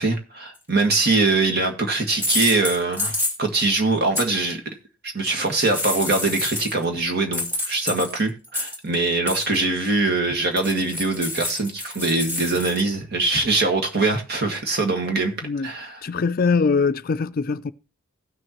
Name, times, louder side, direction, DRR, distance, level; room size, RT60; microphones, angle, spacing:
voice 1, 0.0-4.6 5.0-15.3 15.6-16.0, right 3 dB, 55° right, 1.8 m, -23 dB
sound 1, 0.9-1.1 2.1-3.6 4.2-4.3 5.4-6.8 7.3-9.0 9.3-9.6 10.6-12.8, left 1 dB, 10° right, 2.0 m, -28 dB
voice 2, 16.0-17.7, left 4 dB, 45° left, 0.5 m, -22 dB
16.5 x 6.3 x 3.0 m
head